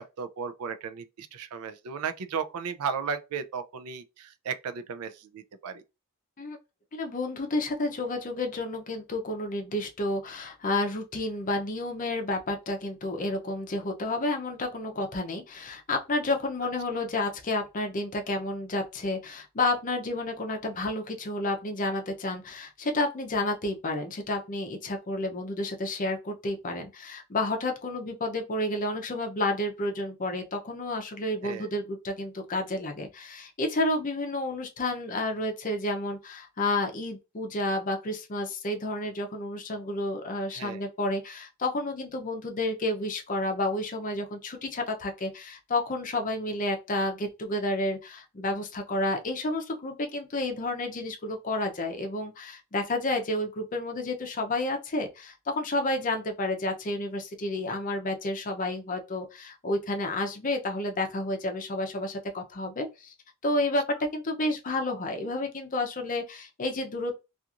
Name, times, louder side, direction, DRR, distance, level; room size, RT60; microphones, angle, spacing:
voice 1, 0.0-5.8 31.4-31.7 40.5-40.8, right 6 dB, 80° right, 0.4 m, -35 dB
voice 2, 6.9-63.1 63.4-67.1, left 2 dB, 35° left, 0.5 m, -30 dB
2.8 x 2.4 x 2.4 m
head